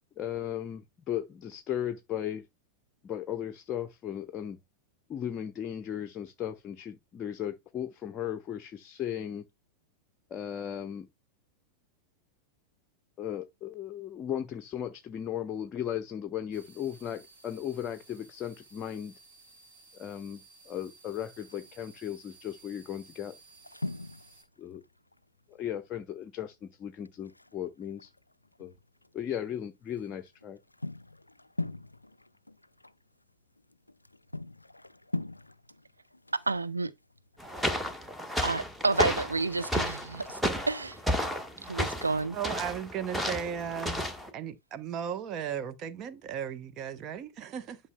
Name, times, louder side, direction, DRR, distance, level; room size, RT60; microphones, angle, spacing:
voice 1, 0.2-2.5 3.0-4.6 5.1-9.4 10.3-11.1 13.2-19.1 19.9-23.3 24.6-24.8 25.6-28.1 28.6-28.7 29.1-30.6, left 10 dB, 30° left, 0.7 m, -36 dB
sound 1, 16.5-24.4, right 3 dB, 60° right, 4.5 m, -57 dB
sound 2, 21.3-22.0 22.6-22.8 23.1-25.8 26.1-26.2 26.5-26.6 27.0-29.1 29.6-37.9, left 2 dB, 85° left, 0.3 m, -42 dB
voice 2, 36.5-36.9 38.4-40.4 40.7-41.0 41.6-42.4, right 3 dB, 80° right, 0.6 m, -30 dB
sound 3, 37.4-44.3, equal, 5° right, 1.5 m, -32 dB
voice 3, 42.3-44.0 44.3-47.8, right 8 dB, 35° right, 0.9 m, -36 dB
11.0 x 5.6 x 2.2 m
figure-of-eight pair, 90°, 0 cm